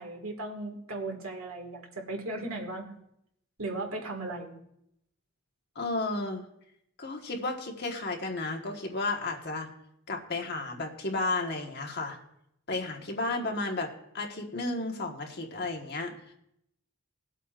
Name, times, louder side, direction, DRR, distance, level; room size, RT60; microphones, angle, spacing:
voice 1, 0.0-3.0 3.6-4.6, right 2 dB, 70° right, 2 dB, 1.9 m, -37 dB
voice 2, 5.7-6.5 7.0-9.7 10.1-12.2 12.7-16.1, left 2 dB, 50° left, 2 dB, 1.4 m, -33 dB
20.0 x 8.2 x 2.5 m, 0.76 s
head